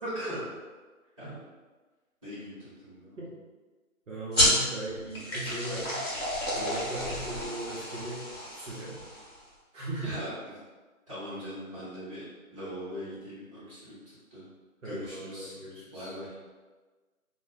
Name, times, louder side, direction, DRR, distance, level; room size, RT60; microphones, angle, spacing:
voice 1, 0.0-0.4 1.2-1.4 2.2-3.2 10.0-10.3 11.1-14.4 14.8-15.6 15.9-16.3, equal, 25° right, -13 dB, 1.0 m, -40 dB
voice 2, 4.1-6.1 6.5-8.2 8.5-8.9 9.7-10.1 14.8-16.1, right 2 dB, 60° right, -7 dB, 0.8 m, -38 dB
sound 1, 4.3-9.4, left 1 dB, 45° left, 0.9 m, -30 dB
2.2 x 2.0 x 3.4 m, 1.3 s
figure-of-eight pair, 165°, 43 cm